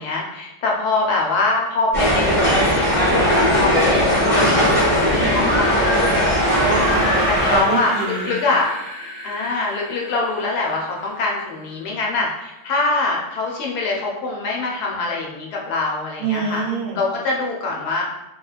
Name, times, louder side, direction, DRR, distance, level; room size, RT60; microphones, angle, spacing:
voice 1, 0.0-4.4 4.7-6.1 7.3-8.7 9.2-16.6 16.9-18.0, left 3 dB, 70° left, -2 dB, 1.0 m, -24 dB
sound 1, 1.9-7.6, equal, 40° left, 0.7 m, -18 dB
sound 2, 4.7-11.6, right 2 dB, 60° right, 0.8 m, -28 dB
voice 2, 6.5-7.2 7.5-8.3 16.2-17.0, right 5 dB, 85° right, 1 dB, 1.2 m, -25 dB
2.9 x 2.8 x 2.3 m, 0.99 s
omnidirectional pair, 1.9 m